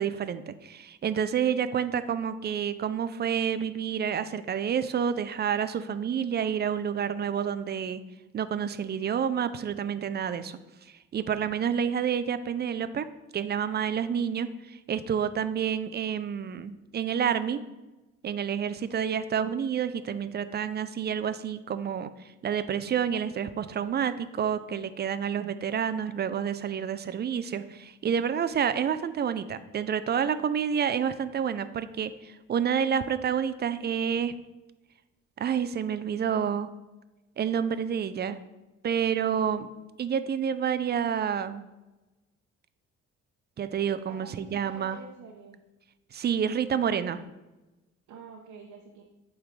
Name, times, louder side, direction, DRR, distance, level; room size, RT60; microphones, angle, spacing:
voice 1, 0.0-8.0 8.3-10.6 11.1-13.1 13.3-17.6 18.2-22.1 22.4-34.3 35.4-36.7 37.4-38.4 38.8-39.7 40.0-41.6 43.6-45.0 46.1-47.2, right 8 dB, 35° right, 12 dB, 0.4 m, -29 dB
voice 2, 44.0-45.6 48.1-49.0, right 5 dB, 70° right, 0 dB, 0.8 m, -46 dB
8.2 x 3.7 x 3.2 m, 1.1 s
cardioid pair, 90°, 30 cm